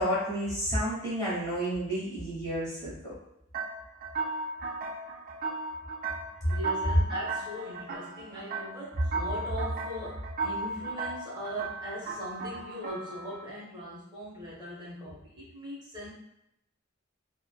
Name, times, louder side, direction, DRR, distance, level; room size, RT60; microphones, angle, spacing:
voice 1, 0.0-3.1, equal, 20° left, -8 dB, 0.9 m, -31 dB
sound 1, 3.5-13.4, right 3 dB, 45° right, 0.4 m, -36 dB
voice 2, 6.4-16.1, equal, 20° right, -7 dB, 1.1 m, -38 dB
3.3 x 2.1 x 2.2 m, 0.81 s
head